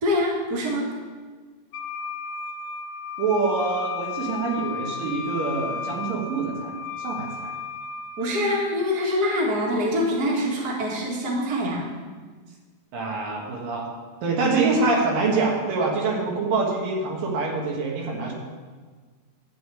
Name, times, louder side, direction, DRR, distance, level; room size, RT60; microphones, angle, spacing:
voice 1, 0.0-0.9 8.2-11.9, left 1 dB, 35° right, -3 dB, 2.2 m, -24 dB
Wind instrument woodwind instrument, 1.7-8.5, left 5 dB, 80° left, 2.1 m, -34 dB
voice 2, 3.2-7.5 12.9-13.9 14.2-18.3, right 3 dB, 85° right, -1 dB, 3.3 m, -25 dB
11.0 x 5.1 x 8.5 m, 1.5 s
omnidirectional pair, 3.8 m